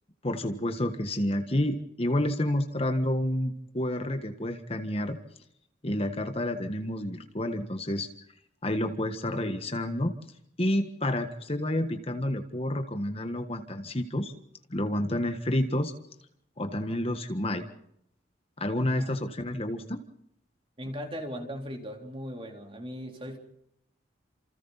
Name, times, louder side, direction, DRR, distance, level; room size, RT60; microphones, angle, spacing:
voice 1, 0.2-5.2 5.8-8.1 8.6-10.1 10.6-14.3 14.7-15.9 16.6-17.7 18.6-20.0, left 1 dB, 30° left, 6 dB, 1.5 m, -29 dB
voice 2, 20.8-23.4, equal, 30° right, 2 dB, 3.9 m, -38 dB
30.0 x 28.0 x 4.2 m, 0.77 s
head